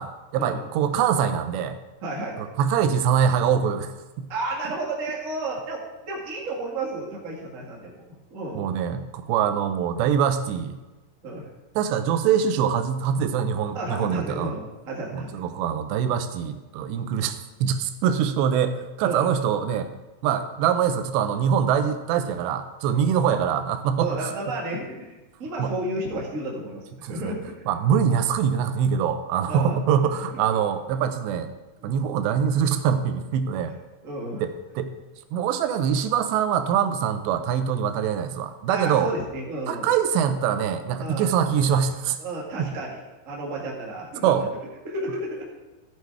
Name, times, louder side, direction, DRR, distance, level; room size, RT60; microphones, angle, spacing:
voice 1, 0.0-1.8 2.4-4.3 8.6-10.8 11.8-14.5 15.1-19.9 20.2-24.3 25.6-25.7 27.0-27.3 27.7-31.5 31.8-33.7 34.4-34.9 35.3-39.1 39.7-42.2 44.2-44.4, right 8 dB, 80° right, 9 dB, 2.9 m, -24 dB
voice 2, 2.0-2.4 4.3-8.0 8.3-8.7 11.2-11.5 13.7-15.3 17.0-17.2 19.0-19.3 22.9-23.2 24.0-27.6 29.5-29.8 30.3-30.4 31.8-32.0 34.0-34.4 38.7-39.9 41.0-41.3 42.2-43.0 43.2-44.4 44.8-45.4, right 2 dB, 40° right, -3 dB, 1.2 m, -32 dB
14.0 x 6.9 x 4.7 m, 1.1 s
omnidirectional pair, 5.0 m